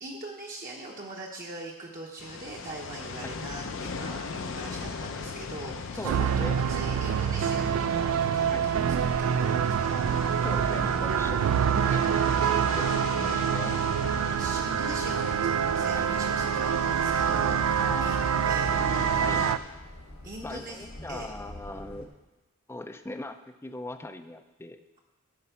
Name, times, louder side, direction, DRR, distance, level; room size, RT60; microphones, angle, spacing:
voice 1, 0.0-10.3 12.7-13.0 14.4-18.2 18.5-18.7 20.2-21.3, right 1 dB, 40° right, -2 dB, 0.8 m, -41 dB
sound 1, 2.2-19.6, left 5 dB, 60° left, 0.6 m, -38 dB
voice 2, 3.2-3.7 6.0-6.6 8.5-8.7 10.4-12.0 12.6-13.8 15.9-16.1 17.8-18.8 19.2-19.8 20.4-22.1 22.7-24.8, left 2 dB, 10° left, 8 dB, 0.4 m, -40 dB
sound 2, 6.0-19.6, right 8 dB, 70° right, 0.3 m, -26 dB
sound 3, 10.9-22.1, equal, 75° left, 1.4 m, -42 dB
12.5 x 4.4 x 5.7 m, 1.1 s
head